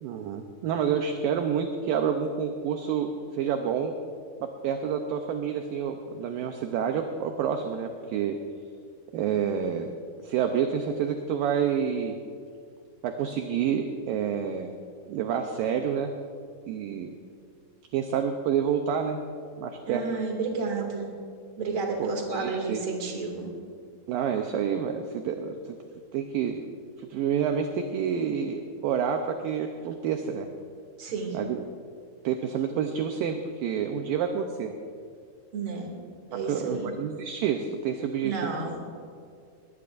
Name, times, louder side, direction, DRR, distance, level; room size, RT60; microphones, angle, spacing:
voice 1, 0.0-3.9 4.4-8.4 9.1-9.9 10.2-12.2 13.0-14.7 15.1-16.1 16.7-17.1 17.9-19.2 19.6-20.2 22.0-22.8 24.1-25.8 26.1-26.7 27.0-30.5 31.3-31.6 32.2-34.7 36.5-38.8, right 7 dB, 75° right, 5 dB, 2.2 m, -28 dB
voice 2, 19.9-21.1 21.6-23.5 31.0-31.4 35.5-35.9 36.3-36.9 38.2-38.8, right 4 dB, 35° right, 1 dB, 2.6 m, -31 dB
22.0 x 19.0 x 2.6 m, 2.2 s
omnidirectional pair, 4.6 m